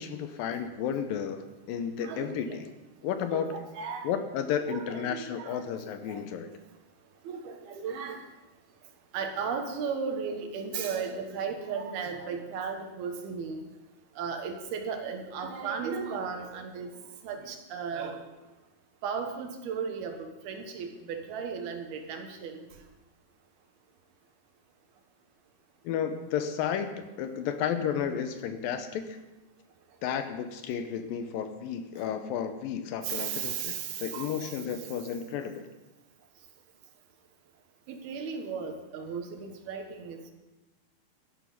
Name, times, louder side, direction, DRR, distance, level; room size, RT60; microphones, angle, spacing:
voice 1, 0.0-2.7 3.0-3.5 4.0-6.5 25.8-29.2 30.0-35.7, left 8 dB, 80° left, 8 dB, 2.4 m, -32 dB
voice 2, 2.0-2.6 3.2-4.1 4.7-6.2 7.2-8.2 9.1-13.6 14.2-16.9 17.2-18.2 19.0-22.7 27.2-27.3 33.0-34.8 37.9-40.3, right 6 dB, 80° right, 5 dB, 3.4 m, -36 dB
13.0 x 11.0 x 5.6 m, 1.0 s
omnidirectional pair, 4.4 m